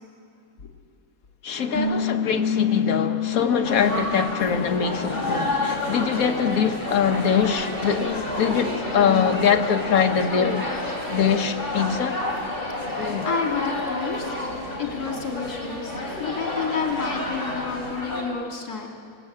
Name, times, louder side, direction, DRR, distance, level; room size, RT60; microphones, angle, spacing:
voice 1, 1.4-10.8 11.1-12.2 13.0-13.3, left 7 dB, 65° left, 1.6 m, -23 dB
Bass guitar, 1.7-8.0, left 7 dB, 30° right, 6.8 m, -30 dB
sound 1, 3.6-18.2, left 1 dB, 30° left, 3.4 m, -30 dB
voice 2, 13.2-14.3 14.8-18.9, left 5 dB, 85° left, 2.6 m, -29 dB
20.5 x 17.0 x 8.5 m
omnidirectional pair, 1.6 m